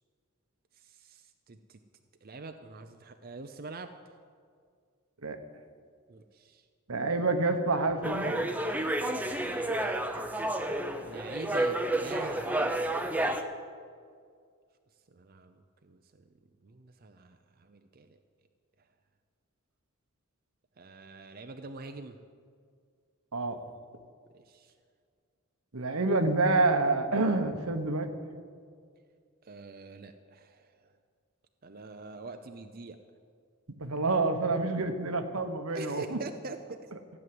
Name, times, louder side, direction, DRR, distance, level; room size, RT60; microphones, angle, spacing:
voice 1, 0.8-1.8 2.2-4.2 6.1-6.7 9.2-10.3 11.0-12.8 15.1-16.2 16.6-18.2 20.8-22.2 24.3-24.7 29.4-30.7 31.6-33.0 35.7-36.8, right 3 dB, 45° right, 7 dB, 0.6 m, -45 dB
voice 2, 6.9-8.4 23.3-23.6 25.7-28.1 33.8-36.2, right 3 dB, 80° right, 7 dB, 1.2 m, -27 dB
sound 1, 8.0-13.4, right 1 dB, 5° right, 0.7 m, -30 dB
15.5 x 9.4 x 7.8 m, 2.1 s
head